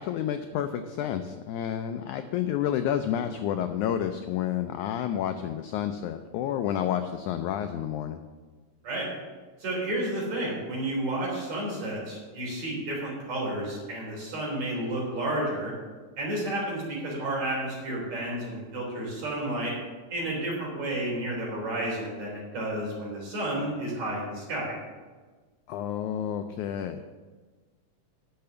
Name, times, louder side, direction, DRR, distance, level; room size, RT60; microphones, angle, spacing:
voice 1, 0.0-8.2 25.7-27.0, left 10 dB, 85° left, 8 dB, 1.7 m, -30 dB
voice 2, 9.6-15.7 16.2-19.8 20.1-24.7, right 1 dB, 50° right, -4 dB, 4.7 m, -31 dB
10.5 x 6.8 x 6.8 m, 1.4 s
omnidirectional pair, 4.0 m